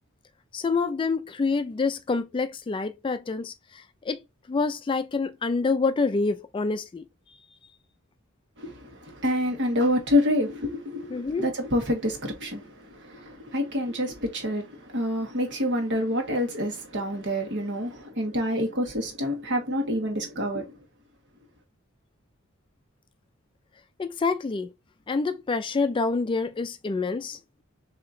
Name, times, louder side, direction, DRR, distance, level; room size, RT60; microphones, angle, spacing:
voice 1, 0.5-4.2 4.5-7.0 11.1-11.5 24.0-24.7 25.1-27.4, left 4 dB, 25° left, 0.3 m, -27 dB
voice 2, 9.2-12.6 13.1-14.6 14.9-20.7, left 1 dB, 55° right, 1.5 m, -27 dB
6.3 x 2.8 x 2.6 m
head